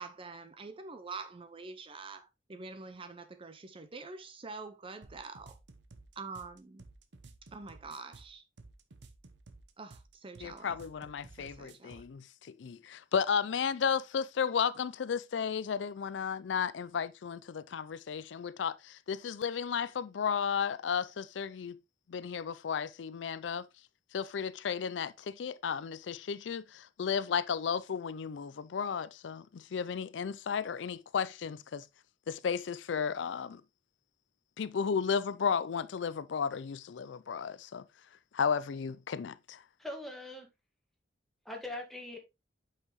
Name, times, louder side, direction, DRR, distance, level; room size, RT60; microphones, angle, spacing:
voice 1, 0.0-5.6 6.2-6.8 7.5-8.4 9.8-10.7 11.4-12.0, right 4 dB, 30° right, 0.6 m, -46 dB
sound 1, 5.0-12.1, right 3 dB, 70° right, 0.9 m, -54 dB
voice 2, 10.4-21.8 22.1-23.7 24.1-31.8 32.3-33.6 34.6-37.8 38.3-39.6, left 6 dB, 80° left, 0.4 m, -34 dB
voice 3, 39.8-40.5 41.5-42.2, left 1 dB, ahead, 1.8 m, -41 dB
8.0 x 5.7 x 3.0 m
head